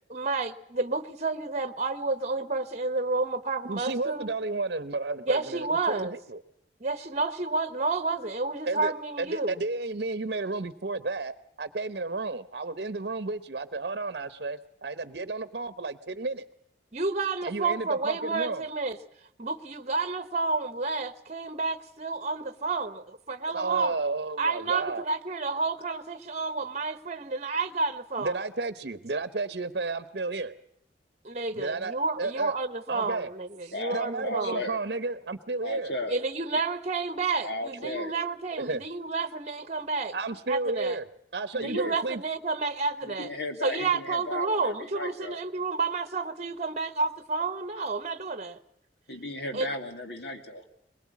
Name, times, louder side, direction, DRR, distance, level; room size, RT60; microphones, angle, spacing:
voice 1, 0.1-4.3 5.3-6.1 6.8-9.6 16.9-19.0 19.4-23.9 24.4-28.4 31.2-34.7 36.1-40.1 40.5-41.0 41.5-43.3 43.6-48.6 49.5-49.7, right 3 dB, 40° right, 1.0 m, -30 dB
voice 2, 3.6-6.4 8.7-16.5 17.4-18.6 23.5-25.1 28.2-30.5 31.5-32.6 32.9-33.3 33.6-35.9 38.6-38.8 40.1-41.0 41.3-42.2, right 3 dB, 60° right, 0.9 m, -32 dB
voice 3, 33.7-34.8 35.6-36.1 37.4-38.1 41.6-42.0 43.0-45.4 49.1-50.7, left 1 dB, 70° left, 2.5 m, -35 dB
22.0 x 21.5 x 8.4 m
head